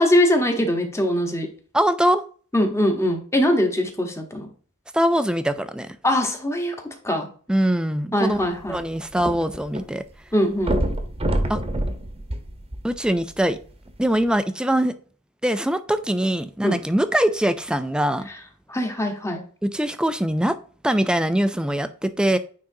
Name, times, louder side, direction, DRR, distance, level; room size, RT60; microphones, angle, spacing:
voice 1, 0.0-1.5 2.5-4.5 6.0-7.3 8.1-8.8 10.3-10.8 16.6-16.8 18.7-19.4, left 1 dB, 10° left, 4 dB, 1.0 m, -22 dB
voice 2, 1.7-2.2 4.9-6.0 7.5-8.4 8.7-10.0 11.5-11.6 12.8-13.6 14.0-14.9 15.4-18.3 19.6-20.6 20.8-22.4, right 1 dB, 5° right, 11 dB, 0.3 m, -22 dB
sound 1, 8.3-9.8 10.1-10.2 10.6-13.2 13.9-14.0, right 1 dB, 25° right, 0.9 m, -26 dB
9.4 x 3.8 x 2.7 m, 0.42 s
head